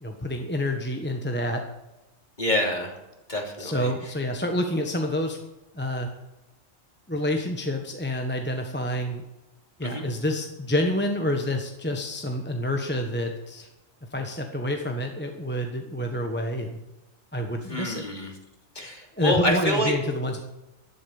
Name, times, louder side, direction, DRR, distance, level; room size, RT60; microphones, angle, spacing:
voice 1, 0.0-1.6 3.6-5.4 5.7-6.1 7.1-9.2 9.8-13.7 14.1-16.8 17.3-18.1 19.2-20.4, left 1 dB, 10° left, 3 dB, 1.1 m, -28 dB
voice 2, 2.4-2.9 3.3-3.9 9.8-10.1 17.7-18.3 18.7-19.9, equal, 35° left, 1 dB, 3.1 m, -26 dB
12.0 x 11.0 x 7.1 m, 1.0 s
omnidirectional pair, 1.4 m